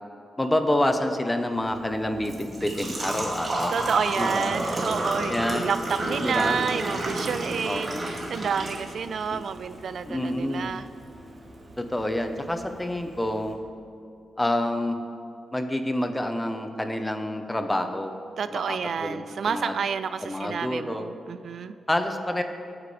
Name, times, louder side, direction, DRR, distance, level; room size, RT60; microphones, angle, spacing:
voice 1, 0.4-3.8 4.2-4.5 5.3-5.7 6.2-6.6 7.6-8.2 9.3-9.4 10.1-10.8 11.8-13.6 14.4-15.0 15.5-18.1 18.5-19.7 20.2-21.1 21.9-22.4, left 1 dB, 10° left, 6 dB, 1.0 m, -28 dB
Engine / Trickle dribble / Fill (with liquid), 1.5-13.5, right 1 dB, 30° right, 2.6 m, -33 dB
voice 2, 3.7-10.8 18.4-21.7, right 6 dB, 60° right, 12 dB, 0.4 m, -29 dB
25.0 x 9.6 x 3.4 m, 2.5 s
wide cardioid pair, 135°, 0 cm